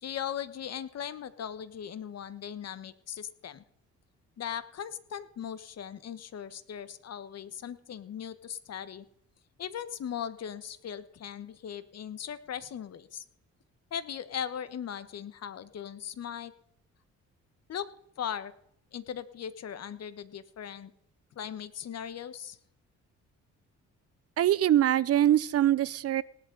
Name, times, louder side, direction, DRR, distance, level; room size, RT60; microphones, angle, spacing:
voice 1, 0.0-3.6 4.4-9.1 9.6-13.2 13.9-16.5 17.7-17.9 18.2-18.5 18.9-20.9 21.3-22.6, left 9 dB, 55° left, 14 dB, 1.2 m, -38 dB
voice 2, 24.4-26.2, right 12 dB, 55° right, 19 dB, 0.6 m, -23 dB
18.5 x 11.5 x 3.9 m, 0.71 s
cardioid pair, 90°, 30 cm